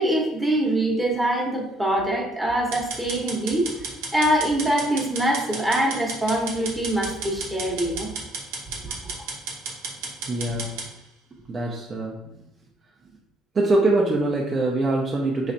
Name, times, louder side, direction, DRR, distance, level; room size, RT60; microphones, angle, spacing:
voice 1, 0.0-3.7 4.1-8.1 8.8-9.2, right 1 dB, 10° right, -2 dB, 1.0 m, -24 dB
sound 1, 2.7-10.9, right 4 dB, 90° right, 1.2 m, -33 dB
voice 2, 10.3-10.7 11.5-12.2 13.5-15.5, right 2 dB, 30° right, -2 dB, 0.7 m, -23 dB
6.0 x 3.1 x 2.7 m, 0.85 s
cardioid pair, 130°, 0 cm